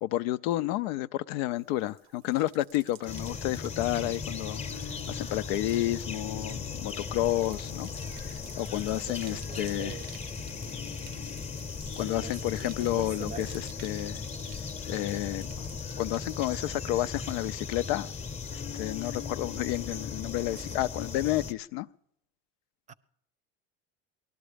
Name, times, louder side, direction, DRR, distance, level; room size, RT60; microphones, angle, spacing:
voice 1, 0.0-4.6 5.1-7.9 8.6-10.0 12.0-13.5 13.8-14.2 14.9-15.5 16.0-18.1 18.5-21.9, left 15 dB, 90° left, 0.5 m, -30 dB
Bathtub (filling or washing), 1.5-17.6 17.8-18.4, right 12 dB, 90° right, 0.8 m, -54 dB
sound 1, 3.1-21.5, left 5 dB, 20° left, 0.8 m, -37 dB
sound 2, 3.6-8.8 9.9-15.0 15.5-17.5 17.9-21.9, left 14 dB, 45° left, 0.6 m, -49 dB
voice 2, 9.0-10.1 12.0-13.7 20.5-20.8 22.9-23.0, right 7 dB, 25° right, 0.6 m, -44 dB
19.5 x 12.5 x 5.1 m
supercardioid pair, 125°, 30 cm